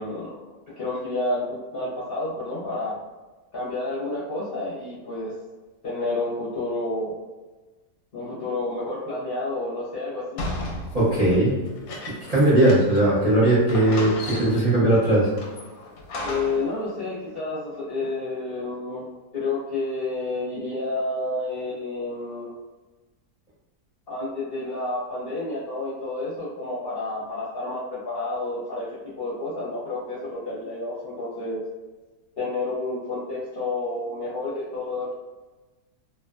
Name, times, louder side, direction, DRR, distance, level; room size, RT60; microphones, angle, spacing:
voice 1, 0.0-3.0 3.5-5.3 5.8-7.1 8.1-10.4 16.2-19.1 19.3-22.5 24.1-31.6 32.4-35.1, left 2 dB, 50° left, -9 dB, 0.8 m, -30 dB
sound 1, 10.4-13.1 13.4-13.5 13.7-14.8 15.4-16.7, left 2 dB, 70° left, 1.0 m, -35 dB
voice 2, 10.9-11.6 12.0-15.3, right 1 dB, 40° right, -10 dB, 0.6 m, -19 dB
2.6 x 2.2 x 2.4 m, 1.2 s
omnidirectional pair, 1.6 m